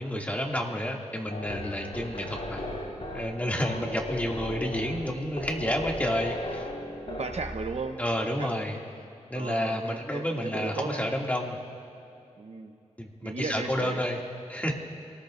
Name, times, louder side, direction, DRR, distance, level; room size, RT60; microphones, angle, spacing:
voice 1, 0.0-2.6 3.1-6.6 8.0-8.8 9.3-11.6 13.0-14.2 14.5-14.7, equal, 10° left, -1 dB, 2.4 m, -30 dB
sound 1, 1.3-7.9, left 1 dB, 70° left, 4.6 m, -37 dB
voice 2, 3.6-3.9 7.0-8.8 9.3-11.1 12.4-12.7 13.2-14.1, right 4 dB, 65° right, 5 dB, 0.9 m, -36 dB
29.5 x 19.0 x 2.6 m, 2.7 s
wide cardioid pair, 60°, 12 cm